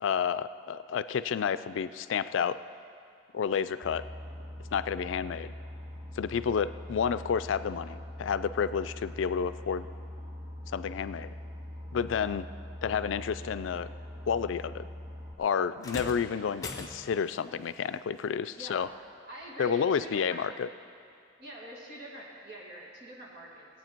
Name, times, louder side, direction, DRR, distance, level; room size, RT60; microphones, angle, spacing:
voice 1, 0.0-2.6 3.3-4.0 4.7-5.5 6.2-9.9 10.7-11.3 11.9-12.5 12.8-13.9 14.3-14.9 15.4-18.9 19.6-20.7, left 7 dB, 85° left, 13 dB, 0.4 m, -30 dB
Boat Water vehicle, 3.8-15.3, left 1 dB, 20° right, 0.9 m, -43 dB
sound 1, 15.8-17.4 18.8-19.0 19.8-19.9, left 2 dB, 20° left, 0.8 m, -41 dB
voice 2, 19.3-20.5 21.4-23.7, right 1 dB, 60° right, -4 dB, 2.3 m, -45 dB
16.5 x 8.4 x 4.5 m, 2.5 s
head